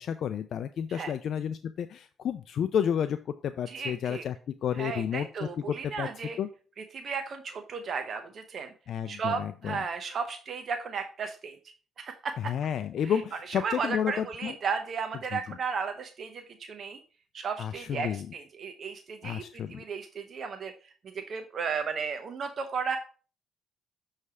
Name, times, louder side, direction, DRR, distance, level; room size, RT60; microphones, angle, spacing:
voice 1, 0.0-6.1 6.4-6.5 8.9-9.8 12.4-14.6 15.3-15.6 17.6-18.3 19.2-19.8, left 8 dB, 65° left, 10 dB, 0.3 m, -31 dB
voice 2, 3.7-4.2 4.8-6.4 6.9-8.7 9.1-11.6 12.0-12.5 13.6-17.0 17.3-19.4 19.7-23.0, right 5 dB, 55° right, 6 dB, 0.7 m, -34 dB
6.7 x 3.2 x 4.7 m, 0.39 s
cardioid pair, 90°, 0 cm